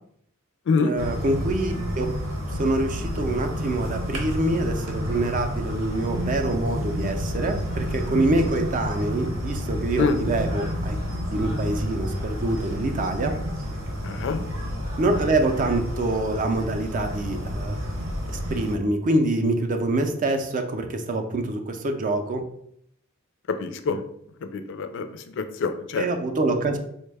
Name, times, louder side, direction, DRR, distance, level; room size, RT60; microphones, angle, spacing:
voice 1, 0.8-2.1 2.6-11.0 11.3-13.4 15.0-17.8 18.3-22.4 26.0-26.8, right 2 dB, 40° right, 6 dB, 0.4 m, -25 dB
sound 1, 1.0-18.7, equal, 80° right, 0.9 m, -30 dB
voice 2, 14.0-14.4 23.6-24.0 24.5-25.0 25.6-26.0, left 4 dB, 60° left, 8 dB, 0.3 m, -25 dB
4.1 x 2.1 x 3.3 m, 0.70 s
head